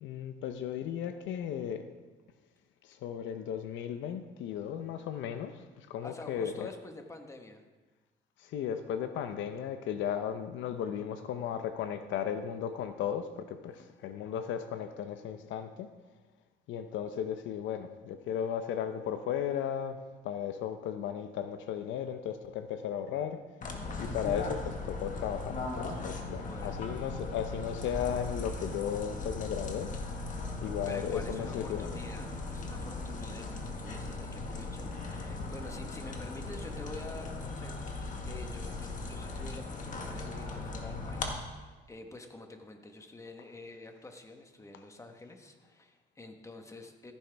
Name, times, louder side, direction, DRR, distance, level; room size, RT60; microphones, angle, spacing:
voice 1, 0.0-1.9 2.8-6.7 8.4-15.9 16.7-23.4 24.0-29.9 30.6-31.9, left 9 dB, 85° left, 9 dB, 0.8 m, -35 dB
voice 2, 6.0-7.6 13.6-14.0 26.3-26.8 30.8-47.1, left 2 dB, 15° left, 5 dB, 1.3 m, -48 dB
sound 1, 23.6-41.3, left 3 dB, 45° left, 1.6 m, -38 dB
14.5 x 10.0 x 3.5 m, 1.3 s
cardioid pair, 110°, 19 cm